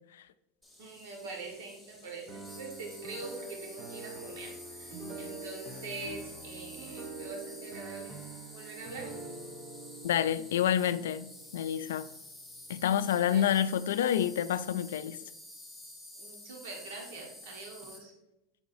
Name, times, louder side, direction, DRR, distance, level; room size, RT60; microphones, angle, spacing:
Insect, 0.6-18.0, left 1 dB, 10° right, 2.2 m, -50 dB
voice 1, 0.8-8.1 8.5-9.1 13.2-13.5 16.2-18.1, right 3 dB, 75° right, 1.5 m, -44 dB
sound 1, 2.3-12.2, right 3 dB, 45° right, 0.9 m, -45 dB
voice 2, 10.0-12.1 12.7-15.2, left 10 dB, 90° left, 0.3 m, -28 dB
8.2 x 4.8 x 2.6 m
supercardioid pair, 120°, 0 cm